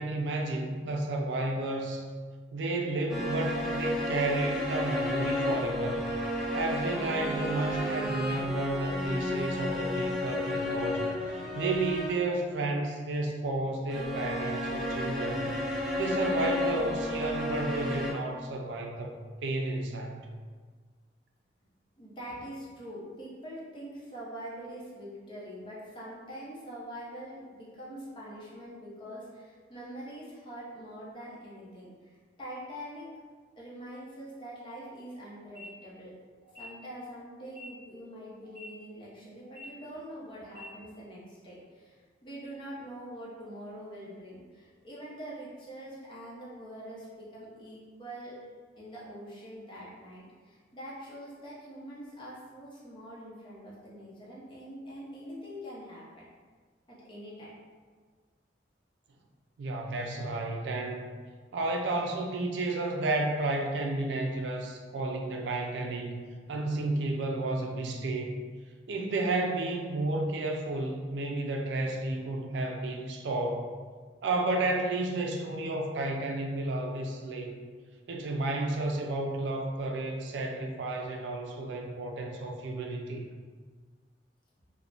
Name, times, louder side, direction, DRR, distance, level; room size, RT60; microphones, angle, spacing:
voice 1, 0.0-2.1 2.5-6.1 6.5-15.5 15.9-19.1 19.4-20.2 59.6-61.0 61.5-66.2 66.5-68.3 68.9-73.7 74.2-77.6 78.1-83.3, right 2 dB, 90° right, 2 dB, 0.4 m, -32 dB
sound 1, 3.1-12.4 13.9-18.1, left 1 dB, ahead, 0.3 m, -32 dB
voice 2, 22.0-33.1 33.6-36.1 36.5-48.4 48.8-56.2 56.9-57.5, equal, 25° left, -6 dB, 0.7 m, -44 dB
sound 2, 35.4-35.6 36.4-36.6 37.4-37.6 38.4-38.6 39.4-39.6 40.4-40.6, left 5 dB, 50° right, 1.1 m, -50 dB
3.4 x 2.1 x 2.5 m, 1.5 s
head